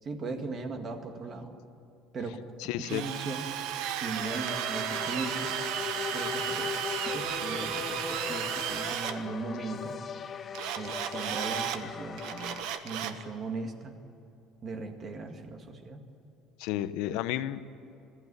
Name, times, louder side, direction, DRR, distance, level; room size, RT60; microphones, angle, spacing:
voice 1, 0.0-1.5 2.1-2.4 2.8-3.5 4.0-5.5 6.1-6.7 7.1-10.0 10.8-13.9 14.6-16.0, right 3 dB, 25° right, 5 dB, 1.9 m, -38 dB
voice 2, 2.6-3.1 16.6-17.6, left 13 dB, 75° left, 13 dB, 0.9 m, -32 dB
Drill, 2.8-9.2 10.5-11.8 12.2-13.2, right 9 dB, 65° right, 1.3 m, -34 dB
sound 1, 4.2-12.6, left 7 dB, 25° left, 0.7 m, -39 dB
21.5 x 14.5 x 9.9 m, 2.8 s
cardioid pair, 165°, 0 cm